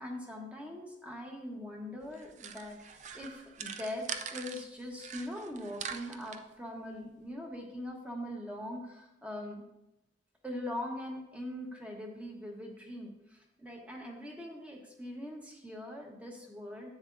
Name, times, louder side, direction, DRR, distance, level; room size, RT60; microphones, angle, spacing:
voice 1, 0.0-4.1 4.3-9.6 10.4-16.9, left 1 dB, 5° right, 0 dB, 1.1 m, -42 dB
sound 1, 2.0-4.6 5.0-6.4, right 7 dB, 40° right, 0.4 m, -43 dB
10.5 x 7.9 x 2.6 m, 0.91 s
head